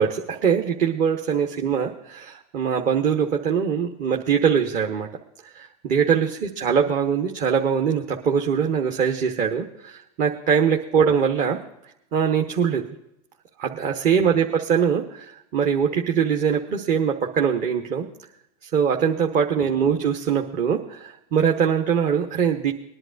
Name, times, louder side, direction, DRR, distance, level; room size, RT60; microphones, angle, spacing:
voice 1, 0.0-5.1 5.5-11.6 12.1-12.8 13.6-18.1 18.6-22.7, right 7 dB, 40° right, 2 dB, 1.1 m, -22 dB
21.0 x 11.0 x 2.6 m, 0.81 s
supercardioid pair, 120°, 20 cm